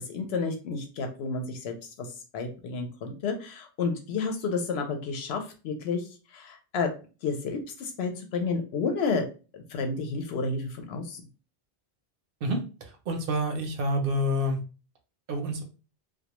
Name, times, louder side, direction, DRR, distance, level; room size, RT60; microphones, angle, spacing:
voice 1, 0.1-2.1 2.3-6.0 6.3-6.9 7.2-9.3 9.5-11.2, left 4 dB, 75° left, 4 dB, 0.8 m, -31 dB
voice 2, 13.1-14.6 15.3-15.6, equal, 65° right, 4 dB, 0.7 m, -27 dB
2.2 x 2.2 x 2.9 m, 0.34 s
omnidirectional pair, 1.1 m